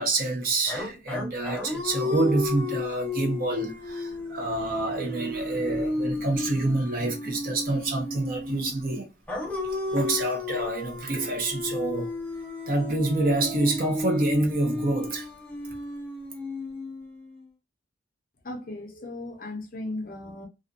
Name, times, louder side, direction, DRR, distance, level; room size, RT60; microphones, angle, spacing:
voice 1, 0.0-9.1 9.9-12.2 12.7-15.3, right 2 dB, 50° right, 0.8 m, -27 dB
sound 1, 0.7-8.7 9.3-17.4, left 2 dB, 5° left, 0.6 m, -33 dB
voice 2, 18.4-20.5, left 2 dB, 50° left, 0.7 m, -36 dB
2.5 x 2.5 x 2.4 m
head